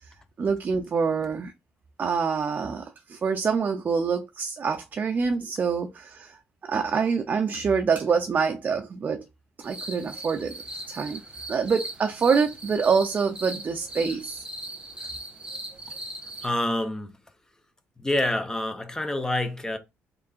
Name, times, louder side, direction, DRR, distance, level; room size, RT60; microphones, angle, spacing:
voice 1, 0.4-1.5 2.0-6.4 6.6-9.2 9.6-10.5 10.9-11.2 11.5-14.4, right 5 dB, 35° right, 0.5 m, -26 dB
sound 1, 9.6-16.5, right 1 dB, 20° right, 1.4 m, -39 dB
voice 2, 16.4-17.2 18.0-19.8, left 1 dB, 15° left, 0.8 m, -27 dB
3.7 x 3.4 x 2.4 m
cardioid pair, 115°, 5 cm